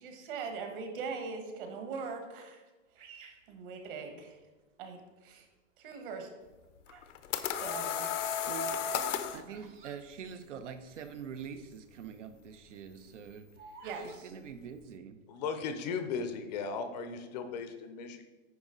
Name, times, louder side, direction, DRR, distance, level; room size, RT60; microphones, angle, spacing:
voice 1, 0.0-2.6 3.1-3.2 3.5-4.4 4.8-5.5 5.8-6.3 7.5-8.1 13.8-14.3, right 5 dB, 45° right, 5 dB, 1.4 m, -41 dB
Bird vocalization bird call bird song, 2.9-4.5 5.1-5.5 6.3-7.2 7.5-11.0 11.3-11.4 11.5-11.9 12.3-14.2, right 4 dB, 20° right, 0.6 m, -55 dB
sound 1, 6.9-9.4, left 8 dB, 75° left, 0.8 m, -33 dB
voice 2, 8.1-8.8 9.3-15.2, right 7 dB, 75° right, 9 dB, 0.8 m, -45 dB
voice 3, 15.3-18.2, left 5 dB, 35° left, 8 dB, 0.6 m, -36 dB
9.5 x 5.0 x 3.8 m, 1.2 s
hypercardioid pair, 155°, 37 cm